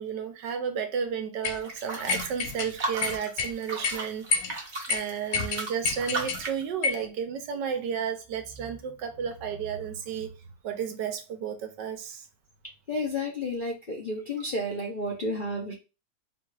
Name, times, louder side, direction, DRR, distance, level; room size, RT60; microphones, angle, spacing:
voice 1, 0.0-4.5 4.9-10.3 10.6-12.2, right 7 dB, 80° right, 1.4 m, -32 dB
sound 1, 1.4-1.6 2.1-2.7 3.0-3.5 3.8-4.0 4.3-4.5 4.9-5.0 5.3-6.4 6.8-7.1, left 5 dB, 65° left, 1.0 m, -28 dB
sound 2, 1.6-6.6, right 3 dB, 35° right, 0.8 m, -36 dB
voice 2, 12.9-15.7, left 1 dB, 45° left, 0.6 m, -31 dB
4.1 x 2.4 x 4.7 m
omnidirectional pair, 1.9 m